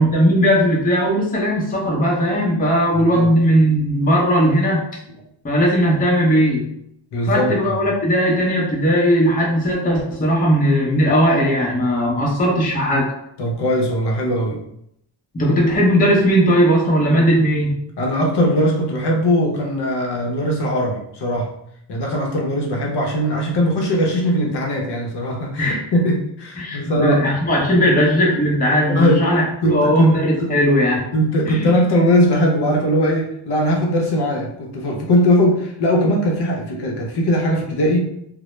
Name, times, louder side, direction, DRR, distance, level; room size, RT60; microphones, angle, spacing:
voice 1, 0.0-4.8 5.4-6.6 7.2-13.1 15.3-17.8 25.6-25.8 26.6-31.1 31.4-31.7, equal, 20° left, -3 dB, 0.5 m, -17 dB
voice 2, 7.1-7.6 13.4-14.6 18.0-21.5 21.9-27.3 27.8-27.9 28.9-29.3 29.6-30.6 31.1-38.1, equal, 60° left, -1 dB, 0.6 m, -20 dB
2.1 x 2.0 x 3.0 m, 0.74 s
wide cardioid pair, 125°, 47 cm